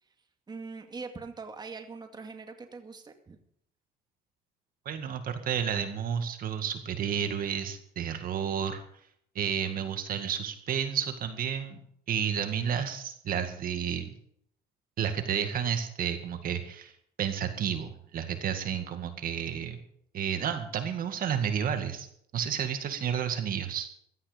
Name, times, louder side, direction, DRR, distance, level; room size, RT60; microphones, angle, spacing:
voice 1, 0.5-3.4, right 4 dB, 25° right, 5 dB, 2.2 m, -42 dB
voice 2, 4.9-8.8 9.4-11.8 12.1-14.1 15.0-16.9 17.2-19.8 20.1-22.1 22.3-23.9, right 8 dB, 60° right, 7 dB, 2.0 m, -31 dB
16.0 x 13.0 x 5.2 m, 0.68 s
cardioid pair, 110°, 17 cm